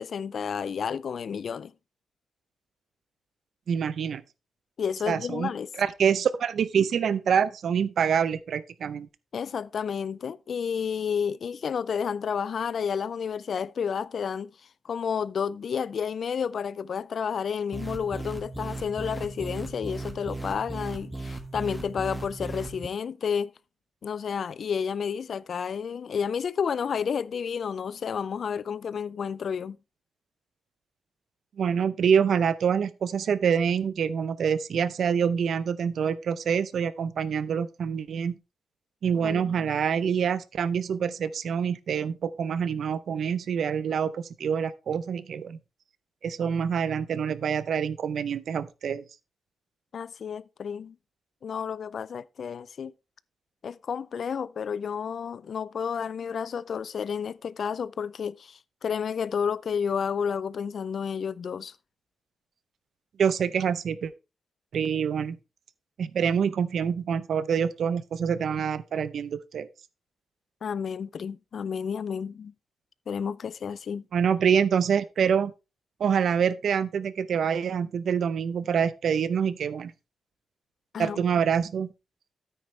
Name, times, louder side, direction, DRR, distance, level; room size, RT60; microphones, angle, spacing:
voice 1, 0.0-1.7 4.8-5.7 9.3-14.5 14.8-23.5 24.0-29.8 39.1-39.7 49.9-50.9 51.4-52.9 53.6-61.7 70.6-72.5 73.1-74.0 80.9-81.2, left 7 dB, 65° left, 0.4 m, -31 dB
voice 2, 3.7-4.2 5.1-9.1 31.6-38.4 39.0-45.6 46.2-49.0 63.2-64.1 64.7-65.4 66.0-69.7 74.1-75.5 76.0-79.9 81.0-81.9, right 7 dB, 75° right, 0.6 m, -26 dB
sound 1, 17.7-22.9, right 2 dB, ahead, 1.4 m, -37 dB
9.4 x 9.1 x 3.2 m
cardioid pair, 100°, 0 cm